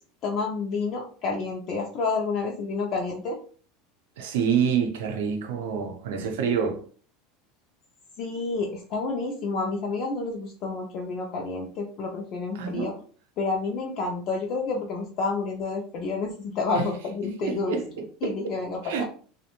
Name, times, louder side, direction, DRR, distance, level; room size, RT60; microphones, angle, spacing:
voice 1, 0.2-3.4 8.2-12.9 13.4-17.8 18.2-19.0, left 4 dB, 30° left, 0.4 m, -29 dB
voice 2, 4.2-6.8 12.5-12.9 16.7-16.9 17.2-18.5 18.8-19.0, right 7 dB, 80° right, 0.6 m, -27 dB
2.5 x 2.1 x 2.9 m
supercardioid pair, 175°, 0 cm